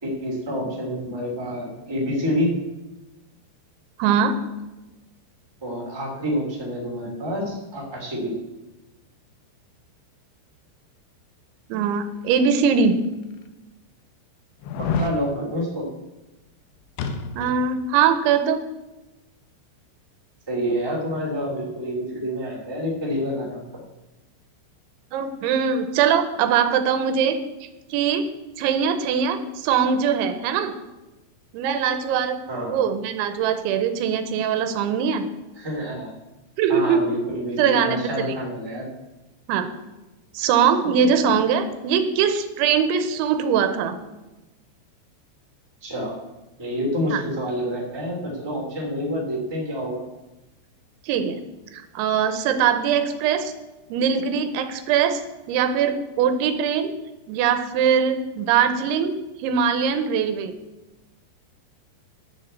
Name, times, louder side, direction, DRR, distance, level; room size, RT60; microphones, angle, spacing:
voice 1, 0.0-2.5 5.6-8.3 14.8-15.8 20.5-23.6 32.5-32.8 35.6-36.1 36.7-38.9 45.8-46.1 46.6-50.0, equal, 5° right, -3 dB, 2.2 m, -28 dB
voice 2, 4.0-4.3 11.7-13.0 17.3-18.6 25.1-28.3 28.6-30.7 31.5-35.2 36.6-37.1 37.6-38.0 39.5-39.7 40.3-44.0 47.1-47.2 51.0-51.4 51.7-53.5 53.9-55.2 55.5-56.9 57.3-60.5, right 7 dB, 80° right, 9 dB, 3.1 m, -22 dB
sound 1, 12.6-12.7 13.4-13.5 14.6-15.2 17.0-17.7 18.0-18.1, left 5 dB, 80° left, 3.4 m, -27 dB
10.5 x 6.8 x 8.2 m, 1.0 s
omnidirectional pair, 5.3 m